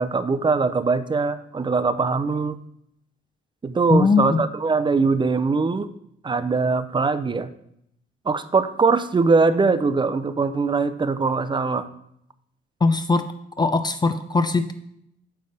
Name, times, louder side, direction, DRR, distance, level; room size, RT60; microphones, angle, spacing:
voice 1, 0.0-2.6 3.6-5.9 6.2-7.5 8.3-11.9, right 4 dB, 25° right, 13 dB, 0.6 m, -22 dB
voice 2, 3.9-4.4 12.8-13.2 13.6-14.7, left 4 dB, 20° left, 9 dB, 0.5 m, -20 dB
9.4 x 3.5 x 6.5 m, 0.76 s
cardioid pair, 90°, 20 cm